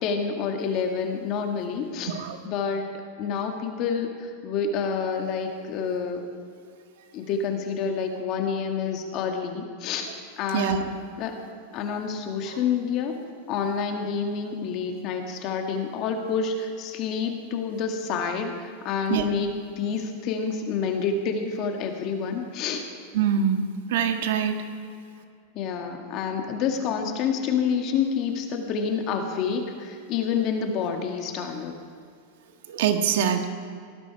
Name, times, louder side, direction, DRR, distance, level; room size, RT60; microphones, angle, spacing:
voice 1, 0.0-2.1 2.4-2.9 3.2-6.2 7.1-10.1 10.4-10.9 11.2-11.4 11.7-13.1 13.5-19.5 19.8-22.8 25.5-31.7, left 6 dB, 40° left, 4 dB, 2.0 m, -28 dB
voice 2, 23.1-23.6 23.9-24.6 32.7-33.5, right 8 dB, 70° right, 6 dB, 1.6 m, -24 dB
18.0 x 12.5 x 4.9 m, 2.3 s
supercardioid pair, 140°, 0 cm